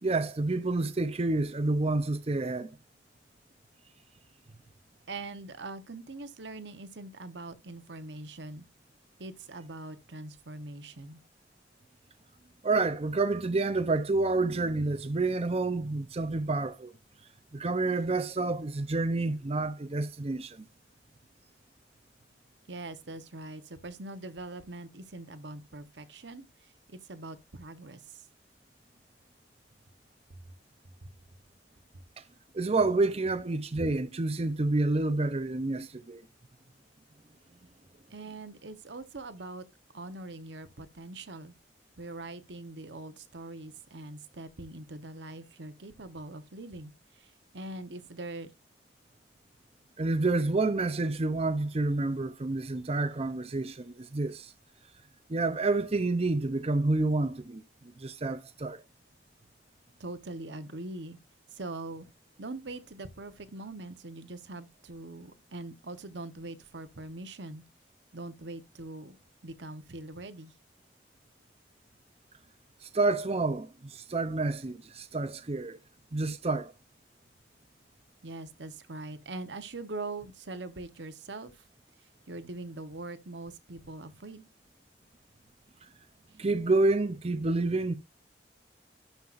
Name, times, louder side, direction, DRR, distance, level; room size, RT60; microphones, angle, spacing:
voice 1, 0.0-2.7 12.6-16.9 17.5-20.7 32.2-32.3 32.5-36.2 50.0-54.5 55.3-57.6 58.0-58.8 72.8-75.8 76.1-76.7 86.4-87.9, right 2 dB, 35° right, 0.6 m, -29 dB
voice 2, 5.1-8.7 9.2-11.2 22.7-28.2 38.1-39.6 39.9-41.5 42.0-48.5 60.0-61.2 61.5-62.0 62.4-67.6 68.1-69.2 69.4-70.5 78.2-81.7 82.0-84.5, right 2 dB, 80° right, 1.1 m, -42 dB
11.5 x 5.6 x 2.5 m
head